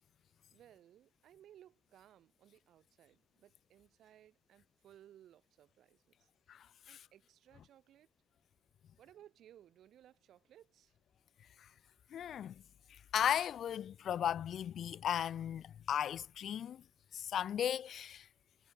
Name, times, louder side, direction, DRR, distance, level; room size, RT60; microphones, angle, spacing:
voice 1, 0.5-6.3 6.9-8.1 9.0-11.0, right 11 dB, 75° right, 6.0 m, -62 dB
voice 2, 6.5-7.0 12.1-12.6 12.9-16.8 17.1-18.3, left 9 dB, 60° left, 0.5 m, -36 dB
wide cardioid pair, 170°, 0 cm